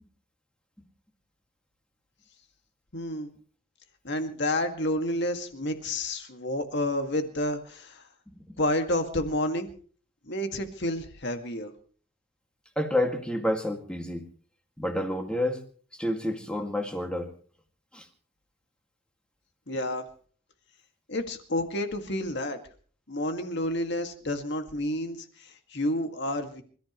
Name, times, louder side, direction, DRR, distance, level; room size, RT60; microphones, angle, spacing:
voice 1, 2.9-3.3 4.0-8.0 8.6-9.7 10.3-11.7 19.7-20.0 21.1-22.6 23.1-26.6, left 1 dB, 50° left, 6 dB, 2.0 m, -30 dB
voice 2, 12.8-14.2 14.8-15.6 16.0-17.3 17.9-18.0, left 1 dB, 5° left, 4 dB, 2.1 m, -29 dB
27.0 x 14.5 x 3.1 m, 0.43 s
head